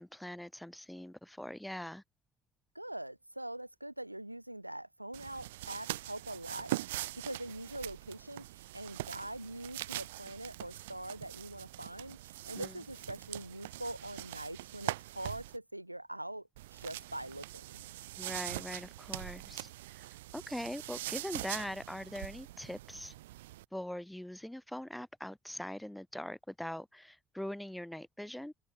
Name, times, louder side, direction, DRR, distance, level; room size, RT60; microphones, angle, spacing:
voice 1, 0.0-2.0 12.6-12.7 18.2-20.0 20.3-23.1 23.7-28.5, left 1 dB, 5° left, 5.0 m, -42 dB
voice 2, 2.7-17.9, right 1 dB, 90° right, 2.1 m, -43 dB
sound 1, 5.1-15.6 16.6-23.6, right 16 dB, 75° right, 1.1 m, -43 dB
open air
figure-of-eight pair, 50°, 0 cm